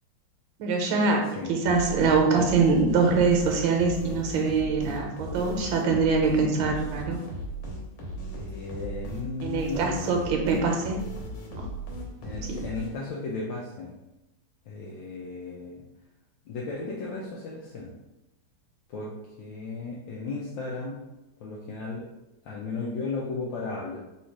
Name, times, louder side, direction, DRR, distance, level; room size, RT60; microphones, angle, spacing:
voice 1, 0.6-1.2 1.5-7.2 9.4-11.0 11.5-11.7 12.5-12.6, right 4 dB, 70° right, 1 dB, 1.5 m, -24 dB
sound 1, 1.6-13.2, right 1 dB, 90° left, 1.9 m, -37 dB
voice 2, 8.3-10.1 12.2-14.0 14.7-15.8 16.5-17.9 18.9-21.0 21.4-22.0 22.4-24.0, left 3 dB, 70° left, -4 dB, 1.3 m, -35 dB
4.1 x 2.4 x 4.6 m, 0.96 s
omnidirectional pair, 2.4 m